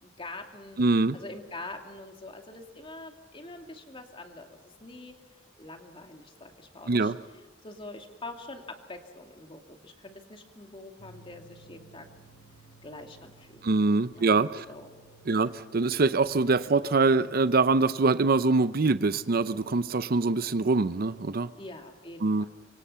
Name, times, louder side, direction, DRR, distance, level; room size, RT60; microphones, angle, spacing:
voice 1, 0.0-0.8 1.1-5.1 5.6-7.1 7.6-12.1 12.8-13.7 14.1-14.4 14.7-15.0 15.3-15.5 21.6-22.5, left 2 dB, 30° left, 4 dB, 2.6 m, -44 dB
voice 2, 0.8-1.2 6.9-7.2 13.6-14.7 15.3-21.5 22.2-22.5, right 3 dB, 50° right, 14 dB, 0.6 m, -24 dB
sound 1, 11.0-20.7, right 2 dB, 65° left, 4.6 m, -55 dB
25.5 x 25.0 x 5.7 m, 1.3 s
head